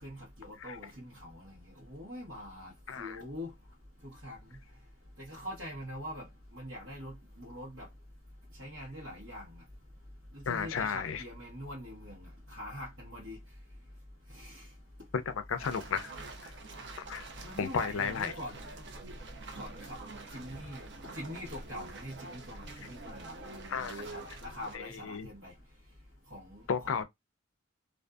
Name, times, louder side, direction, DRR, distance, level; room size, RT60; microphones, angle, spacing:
voice 1, 0.0-3.5 4.0-4.6 5.2-6.3 6.5-7.9 8.6-9.6 10.3-13.4 14.3-14.7 17.4-18.6 19.6-20.0 20.3-20.9 21.1-25.5 26.3-27.0, left 1 dB, 90° right, 1.2 m, -44 dB
voice 2, 10.5-11.2 15.1-16.1 16.4-16.5 17.0-17.3 17.6-18.3 23.7-24.0 24.7-25.3 26.7-27.0, left 6 dB, 85° left, 0.4 m, -33 dB
sound 1, 15.6-24.8, right 3 dB, 60° right, 0.5 m, -46 dB
2.5 x 2.4 x 2.3 m
head